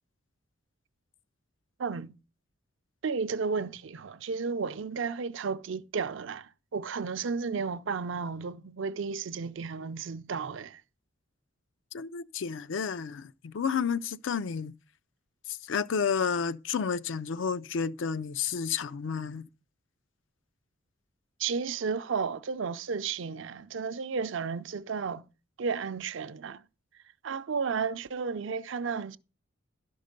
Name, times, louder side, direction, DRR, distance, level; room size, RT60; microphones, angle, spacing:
voice 1, 1.8-2.1 3.0-10.8 21.4-25.2 25.6-26.6 27.2-29.2, right 5 dB, 65° right, 0.5 m, -33 dB
voice 2, 11.9-14.7 15.5-19.5, left 6 dB, 65° left, 0.4 m, -31 dB
12.0 x 5.4 x 5.2 m
head